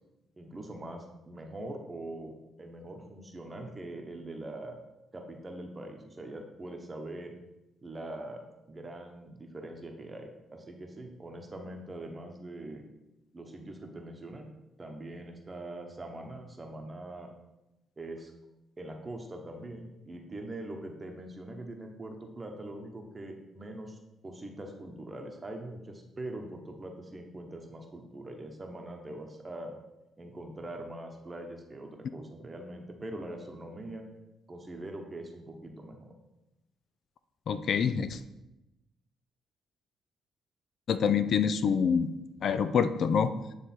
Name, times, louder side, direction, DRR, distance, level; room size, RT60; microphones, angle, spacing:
voice 1, 0.4-2.3 2.6-4.8 5.1-7.3 7.8-12.8 13.3-14.5 14.8-17.3 18.0-18.3 18.8-29.7 30.2-34.0 34.5-36.1, right 1 dB, 25° right, 3 dB, 0.9 m, -42 dB
voice 2, 37.5-38.2 40.9-42.1 42.4-43.3, left 7 dB, 60° left, 11 dB, 0.3 m, -26 dB
9.1 x 3.3 x 4.3 m, 0.95 s
cardioid pair, 90°, 0 cm